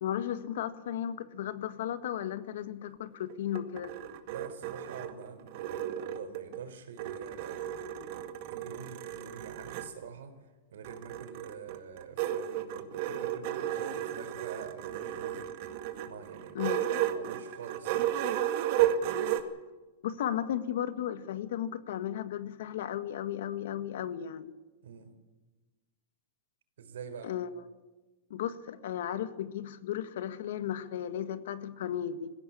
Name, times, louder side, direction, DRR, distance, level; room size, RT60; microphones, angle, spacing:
voice 1, 0.0-3.9 16.5-16.8 20.0-24.5 27.2-27.5 28.3-32.3, left 10 dB, 70° left, 12 dB, 1.7 m, -35 dB
sound 1, 3.3-6.6 7.0-9.9 10.8-19.4, right 11 dB, 50° right, 2.1 m, -33 dB
voice 2, 4.3-7.6 8.5-10.4 10.7-15.4 16.0-18.1 24.8-25.1 26.8-27.4, right 7 dB, 90° right, 8 dB, 4.2 m, -46 dB
20.0 x 16.0 x 8.7 m, 1.2 s
supercardioid pair, 150°, 0 cm